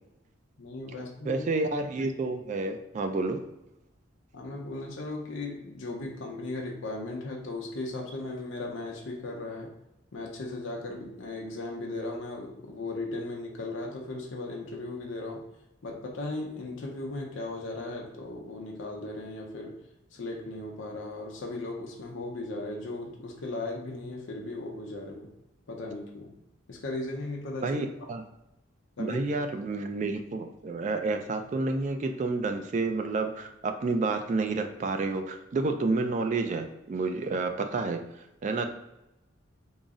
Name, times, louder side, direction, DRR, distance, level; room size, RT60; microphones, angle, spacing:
voice 1, 0.6-1.4 4.3-9.7 10.1-15.5 15.8-25.3 25.7-26.3 26.7-27.8 29.0-29.2, left 2 dB, 85° left, 0 dB, 0.6 m, -37 dB
voice 2, 1.3-3.4 27.6-28.2 29.0-38.0 38.4-38.7, right 3 dB, 40° right, 6 dB, 0.3 m, -29 dB
3.8 x 2.0 x 3.5 m, 0.91 s
head